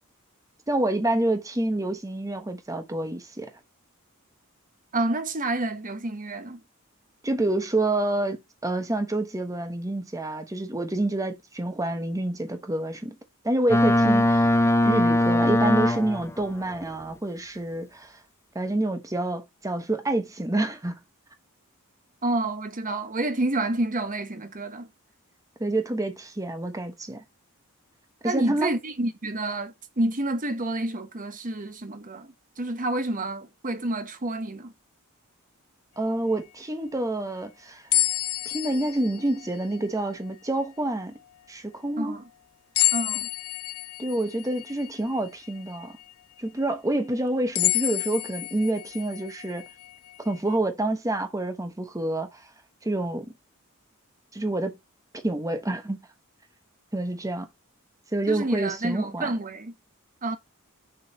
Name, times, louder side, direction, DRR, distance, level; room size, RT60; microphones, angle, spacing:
voice 1, 0.7-3.5 7.2-13.1 13.4-14.5 14.8-18.2 18.5-21.0 25.6-27.2 28.2-28.7 36.0-37.8 38.4-41.1 41.5-42.1 44.0-46.0 46.4-49.6 50.2-52.4 52.8-53.3 54.3-54.8 55.1-56.0 56.9-57.5 58.1-59.3, right 1 dB, 15° right, 1.0 m, -28 dB
voice 2, 4.9-6.6 22.2-24.9 28.2-34.7 42.0-42.2 42.9-43.3 58.3-59.7 60.2-60.4, right 2 dB, 40° right, 1.1 m, -29 dB
Boat Water vehicle, 13.7-16.4, left 1 dB, 10° left, 0.5 m, -20 dB
sound 1, 37.9-40.3 40.9-41.0 42.8-46.1 46.6-46.7 47.6-50.6, left 17 dB, 70° left, 0.4 m, -29 dB
6.8 x 3.8 x 5.1 m
head